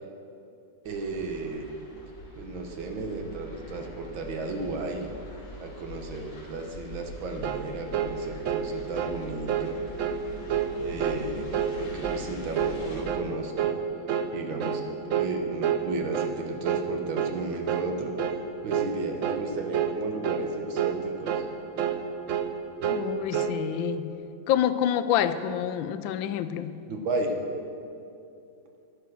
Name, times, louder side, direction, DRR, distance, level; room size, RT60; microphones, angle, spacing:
sound 1, 0.8-13.0, left 1 dB, 60° left, 2.6 m, -44 dB
voice 1, 0.9-1.7 2.4-5.1 5.6-9.8 10.8-13.7 14.3-18.1 18.6-21.5 26.9-27.4, right 3 dB, 90° right, 4 dB, 2.0 m, -34 dB
sound 2, 7.4-7.7 7.9-8.1 8.4-8.7 9.0-9.2 9.5-9.7 10.0-10.2 10.5-10.7 11.0-11.2 11.5-11.8 12.0-12.3 12.5-12.8 13.1-13.3 13.6-13.8 14.1-14.3 14.6-14.8 15.1-15.3 15.6-15.9 16.1-16.4 16.6-16.9 17.2-17.4 17.7-17.9 18.2-18.4 18.7-18.9 19.2-19.5 19.7-20.0 20.2-20.5 20.8-21.0 21.3-21.5 21.8-22.0 22.3-22.5 22.8-23.1 23.3-23.6, right 9 dB, 70° right, 0.7 m, -28 dB
voice 2, 22.9-24.1 24.5-26.8, left 10 dB, 85° left, 13 dB, 1.3 m, -27 dB
11.0 x 10.5 x 6.3 m, 2.7 s
omnidirectional pair, 2.1 m